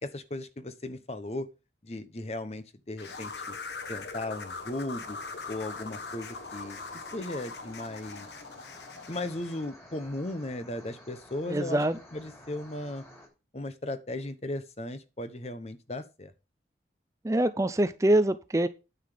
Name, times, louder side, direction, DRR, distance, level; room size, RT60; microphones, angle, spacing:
voice 1, 0.0-1.5 1.8-3.5 3.9-5.2 5.5-6.8 7.1-8.3 9.1-11.8 12.1-13.0 13.5-16.3, left 1 dB, 35° left, 0.9 m, -36 dB
sound 1, 3.0-9.6, left 4 dB, 70° left, 1.2 m, -41 dB
sound 2, 5.0-13.3, left 1 dB, 15° left, 3.0 m, -52 dB
voice 2, 11.5-12.0 17.2-18.7, right 1 dB, 15° right, 0.5 m, -24 dB
9.5 x 5.9 x 5.1 m
head